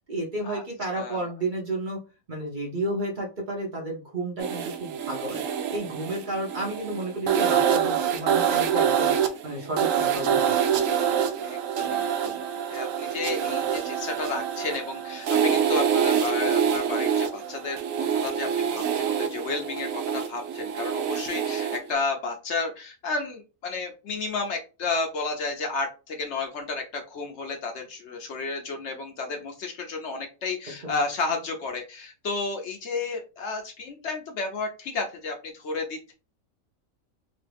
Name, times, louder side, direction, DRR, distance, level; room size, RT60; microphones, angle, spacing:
voice 1, 0.1-2.0 2.3-5.4 5.7-9.1 9.4-10.5 30.8-30.9, right 1 dB, 45° right, -1 dB, 0.8 m, -32 dB
voice 2, 0.9-1.3 11.4-12.4 12.7-36.1, left 4 dB, 65° left, 3 dB, 0.8 m, -32 dB
sound 1, 4.4-21.9, right 8 dB, 75° right, 0.9 m, -26 dB
3.0 x 2.4 x 3.3 m, 0.31 s
omnidirectional pair, 1.4 m